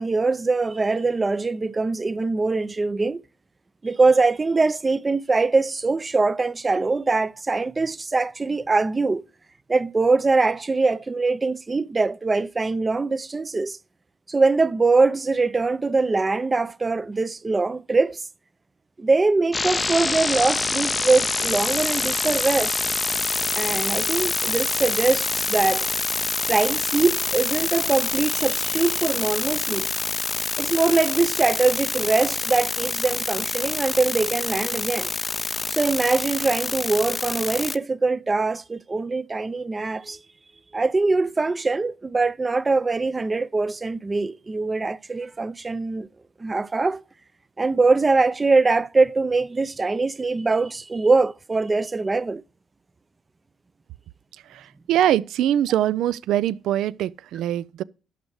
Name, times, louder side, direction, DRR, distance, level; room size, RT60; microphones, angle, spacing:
voice 1, 0.0-3.2 3.8-9.2 9.7-13.8 14.3-18.2 19.0-22.8 23.5-25.9 26.5-29.9 30.6-35.1 35.7-40.2 40.7-46.1 46.4-47.0 47.6-52.4, right 3 dB, 25° right, 0.5 m, -22 dB
sound 1, 19.5-37.8, left 3 dB, 25° left, 0.4 m, -26 dB
voice 2, 54.5-57.8, right 11 dB, 80° right, 0.4 m, -23 dB
11.5 x 6.4 x 4.7 m
cardioid pair, 90°, 0 cm